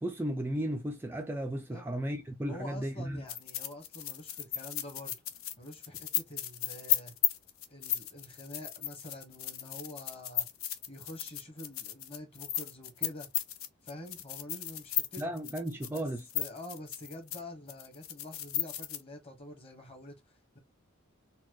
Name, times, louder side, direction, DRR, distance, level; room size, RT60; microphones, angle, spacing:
voice 1, 0.0-3.2 15.2-16.2, right 1 dB, 10° right, 0.3 m, -35 dB
voice 2, 2.4-5.2 5.6-7.2 7.7-10.5 10.9-13.3 13.8-15.3 15.9-16.1 16.3-20.6, left 1 dB, 30° left, 1.2 m, -47 dB
sound 1, 3.3-17.4 17.7-19.0, left 11 dB, 80° left, 0.6 m, -35 dB
4.0 x 2.2 x 2.9 m
head